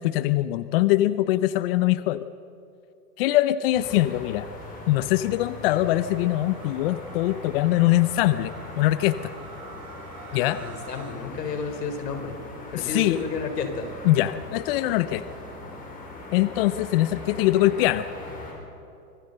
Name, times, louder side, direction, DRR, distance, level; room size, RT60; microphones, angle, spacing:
voice 1, 0.0-2.3 3.2-4.5 4.9-9.3 10.3-10.6 12.7-13.2 14.0-15.2 16.3-18.1, left 15 dB, 40° left, 14 dB, 0.6 m, -22 dB
Night city atmosphere, 3.7-18.5, left 2 dB, 15° left, 5.4 m, -41 dB
sound 1, 5.9-11.1, right 5 dB, 70° right, 7.1 m, -46 dB
voice 2, 10.5-12.3 12.7-13.9, left 4 dB, 80° left, 6 dB, 4.2 m, -31 dB
25.5 x 19.0 x 6.7 m, 2.6 s
hypercardioid pair, 140°, 48 cm